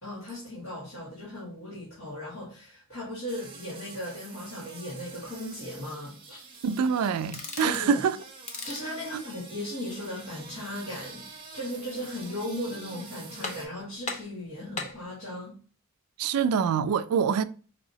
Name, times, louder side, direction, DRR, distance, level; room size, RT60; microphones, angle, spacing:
voice 1, 0.0-6.4 7.6-8.0 8.6-15.6, left 1 dB, 65° left, 1.7 m, -37 dB
sound 1, 3.3-13.7, right 4 dB, 25° right, 0.7 m, -46 dB
voice 2, 6.6-8.2 9.1-9.2 16.2-17.4, right 6 dB, 90° right, 0.3 m, -25 dB
sound 2, 7.3-7.9 8.4-9.0 12.0-12.5 12.9-13.0 13.4-13.8 14.0-15.0, left 3 dB, 30° left, 0.6 m, -38 dB
4.7 x 2.9 x 2.8 m
head